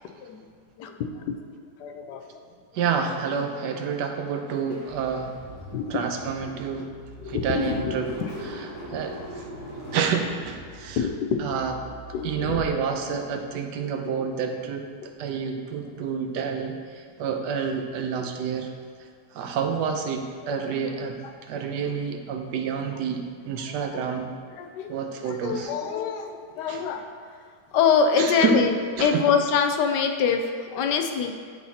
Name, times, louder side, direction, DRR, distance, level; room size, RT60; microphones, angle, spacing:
voice 1, 0.8-1.3 1.8-2.2 5.7-6.2 7.2-7.9 8.2-8.7 11.0-11.7 12.1-12.6 14.1-14.3 15.9-16.0 18.1-18.3 20.5-20.6 21.2-21.3 23.6-24.1 24.6-24.9 25.3-27.0 27.7-31.3, left 6 dB, 85° left, 5 dB, 1.2 m, -25 dB
voice 2, 2.7-5.4 5.9-6.9 7.3-8.1 8.4-9.2 9.9-11.0 11.4-11.8 12.2-18.7 19.3-21.2 21.5-24.3 24.9-25.7 26.7-26.8 28.2-28.6 29.0-29.2, right 6 dB, 90° right, 4 dB, 1.3 m, -28 dB
Car / Engine starting, 4.7-13.5, equal, 65° left, 2.5 m, -41 dB
11.0 x 4.0 x 2.8 m, 2.1 s
omnidirectional pair, 1.8 m